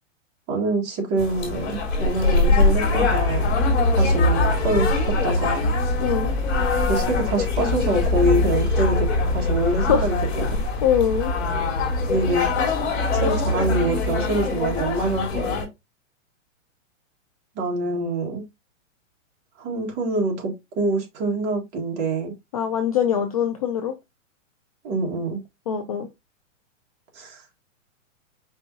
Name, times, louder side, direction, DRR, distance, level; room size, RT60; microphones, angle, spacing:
voice 1, 0.5-3.6 4.0-4.9 5.2-5.7 6.8-9.1 9.3-10.6 12.0-12.5 13.1-15.7 17.6-18.4 19.6-22.3 24.8-25.4 27.2-27.4, right 2 dB, 25° right, 1.7 m, -25 dB
sound 1, 1.2-15.6, left 3 dB, 55° left, 2.4 m, -22 dB
voice 2, 6.0-6.3 9.8-10.1 10.8-11.3 22.5-23.9 25.7-26.1, left 8 dB, 30° left, 0.4 m, -22 dB
5.4 x 3.4 x 2.8 m
hypercardioid pair, 155°, 39 cm